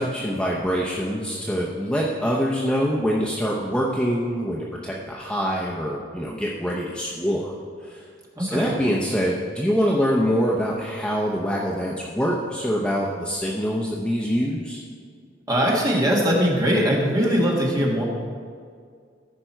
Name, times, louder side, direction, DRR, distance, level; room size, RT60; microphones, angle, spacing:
voice 1, 0.0-7.5 7.8-8.0 8.4-14.8, equal, 5° left, -4 dB, 0.7 m, -24 dB
voice 2, 8.4-8.8 15.5-18.0, equal, 20° right, -3 dB, 1.7 m, -21 dB
15.0 x 5.2 x 4.5 m, 2.1 s
head